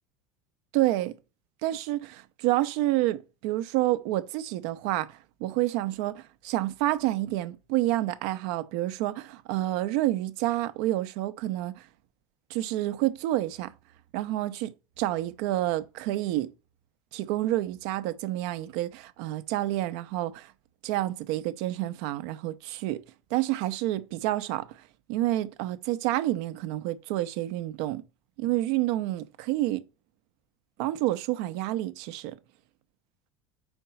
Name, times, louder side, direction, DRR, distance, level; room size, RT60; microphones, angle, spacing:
voice 1, 0.7-1.1 1.6-11.9 12.5-13.7 14.1-14.7 15.0-16.5 17.1-20.5 20.8-23.0 23.3-24.8 25.1-28.0 28.4-29.8 30.8-32.3, right 15 dB, 65° right, 0.8 m, -29 dB
4.6 x 4.4 x 5.5 m
hypercardioid pair, 80°, 16 cm